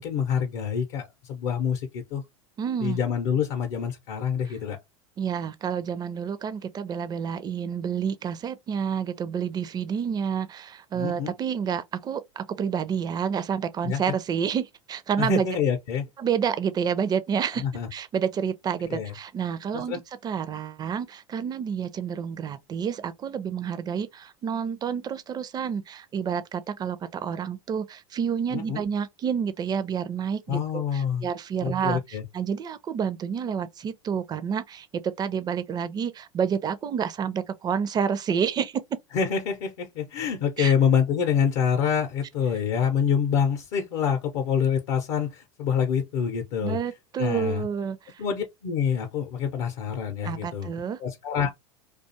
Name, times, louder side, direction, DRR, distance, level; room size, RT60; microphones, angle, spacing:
voice 1, 0.0-2.2 2.8-4.8 10.9-11.3 13.8-14.0 15.2-16.0 17.6-17.9 18.9-19.1 19.7-20.0 28.5-28.8 30.5-31.3 31.6-32.2 39.1-46.8 47.2-47.6 48.2-50.7 51.0-51.5, left 7 dB, 60° left, 0.6 m, -26 dB
voice 2, 2.6-3.0 5.2-15.5 16.2-17.6 17.9-38.8 40.6-40.7 46.6-48.1 50.2-51.0, right 7 dB, 25° right, 0.4 m, -29 dB
2.4 x 2.3 x 2.7 m
hypercardioid pair, 90°, 17 cm